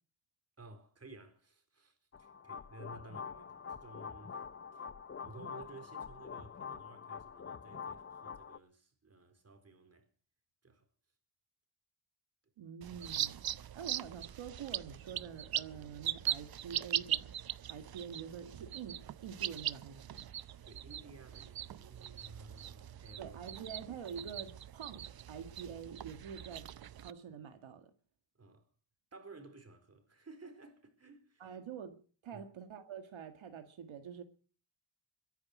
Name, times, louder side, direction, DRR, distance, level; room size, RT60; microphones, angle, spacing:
voice 1, 0.6-4.4 4.7-4.9 5.2-10.1 10.6-10.8 20.6-23.4 28.4-28.7 29.1-31.6 32.3-32.4, right 3 dB, 30° right, 4.2 m, -55 dB
sound 1, 2.1-8.6, left 6 dB, 25° left, 0.8 m, -46 dB
voice 2, 12.6-13.4 13.7-17.3 17.7-20.3 23.2-27.9 31.4-34.2, right 7 dB, 75° right, 1.9 m, -46 dB
sound 2, 12.8-27.1, right 11 dB, 50° right, 0.7 m, -41 dB
22.5 x 10.5 x 6.1 m
cardioid pair, 105°, 48 cm